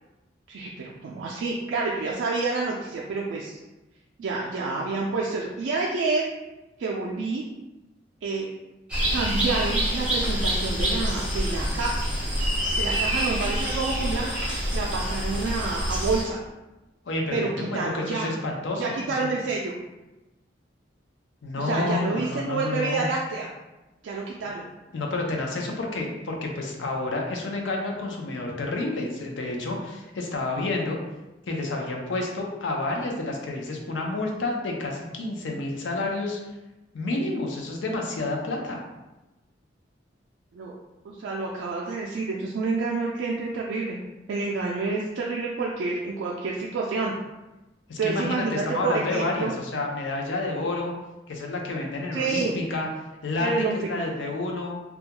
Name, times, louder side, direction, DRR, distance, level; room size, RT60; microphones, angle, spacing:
voice 1, 0.5-3.6 4.2-6.2 6.8-7.4 8.2-8.5 9.1-11.9 12.8-14.3 14.7-16.4 17.3-18.3 18.8-19.7 21.6-23.5 24.0-24.7 40.5-40.7 41.0-44.0 44.3-47.2 48.0-49.5 52.1-52.5 53.4-54.0, right 3 dB, 85° right, -3 dB, 0.3 m, -28 dB
sound 1, 8.9-16.2, equal, 5° right, 0.6 m, -26 dB
voice 2, 17.1-19.3 21.4-23.0 24.9-31.0 31.5-36.4 36.9-38.8 47.9-50.9 51.3-52.9 53.2-54.7, left 2 dB, 75° left, 0 dB, 0.5 m, -29 dB
2.3 x 2.2 x 2.8 m, 1.0 s
head